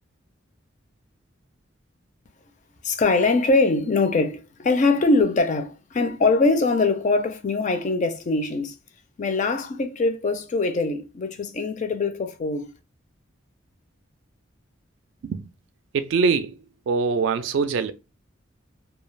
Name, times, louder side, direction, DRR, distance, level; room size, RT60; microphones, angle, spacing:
voice 1, 2.8-8.7 9.2-12.7, left 3 dB, 40° left, 0.4 m, -22 dB
voice 2, 15.9-16.5 16.9-17.9, right 5 dB, 65° right, 0.3 m, -23 dB
2.3 x 2.3 x 3.1 m
head